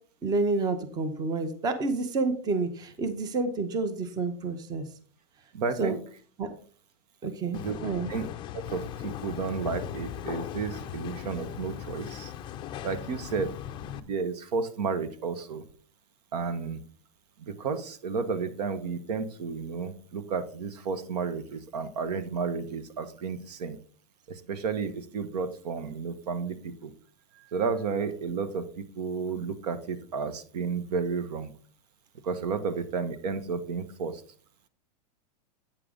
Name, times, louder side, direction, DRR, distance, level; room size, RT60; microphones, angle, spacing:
voice 1, 0.2-4.9 5.8-6.0 6.4-6.5 7.2-8.1 27.3-27.5, right 3 dB, 20° right, 10 dB, 0.8 m, -29 dB
voice 2, 5.5-6.0 7.5-7.8 8.1-8.2 8.7-12.3 12.8-13.5 13.9-15.6 16.3-16.8 17.4-23.8 24.3-26.9 27.5-31.5 32.2-34.2, right 5 dB, 75° right, 12 dB, 1.2 m, -32 dB
sound 1, 7.5-14.0, left 10 dB, 25° left, 0.4 m, -38 dB
8.6 x 6.7 x 3.7 m, 0.43 s
supercardioid pair, 150°, 21 cm